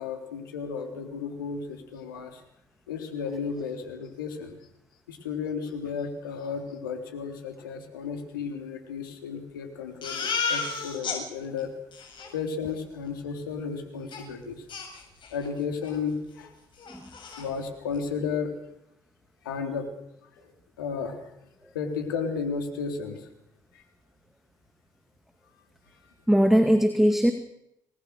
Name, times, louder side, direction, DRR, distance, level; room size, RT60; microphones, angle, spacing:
voice 1, 0.0-2.4 2.9-4.6 5.1-11.7 12.3-14.7 15.3-16.5 17.4-18.5 19.4-19.9 20.4-20.5 20.8-21.2 21.7-23.3 23.7-23.8 26.0-26.1, left 5 dB, 80° left, 5 dB, 3.6 m, -33 dB
Crying sobbing, 10.0-11.2 11.6-11.7 11.9-12.3 14.1-14.2 14.7-15.5 15.8-16.0 16.3-16.4 16.8-17.5, left 5 dB, 45° left, 7.9 m, -32 dB
voice 2, 26.3-27.3, equal, 5° right, 8 dB, 2.4 m, -20 dB
27.0 x 20.5 x 6.6 m, 0.79 s
hypercardioid pair, 50°, 11 cm